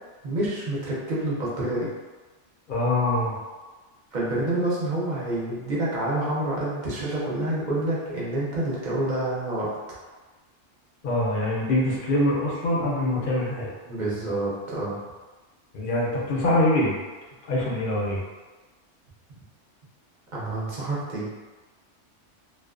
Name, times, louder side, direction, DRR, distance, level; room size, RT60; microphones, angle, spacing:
voice 1, 0.2-1.9 4.1-9.7 13.8-15.0 20.3-21.3, right 1 dB, 50° right, -7 dB, 0.6 m, -28 dB
voice 2, 2.7-3.4 11.0-13.7 15.7-17.0 17.5-18.2, left 1 dB, 55° left, -4 dB, 0.6 m, -24 dB
2.4 x 2.2 x 2.3 m, 1.3 s
omnidirectional pair, 1.2 m